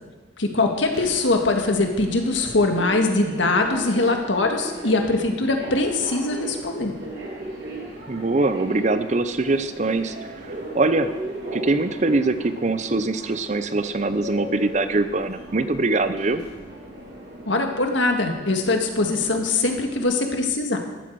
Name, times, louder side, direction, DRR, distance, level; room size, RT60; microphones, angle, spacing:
voice 1, 0.4-6.9 17.5-20.8, left 2 dB, 75° left, 3 dB, 1.8 m, -22 dB
Subway metro underground, 0.7-20.0, right 1 dB, 60° right, 3.8 m, -37 dB
voice 2, 8.1-10.2 10.4-11.1 11.5-16.4, right 2 dB, 40° right, 11 dB, 0.6 m, -23 dB
14.0 x 12.0 x 4.7 m, 1.3 s
head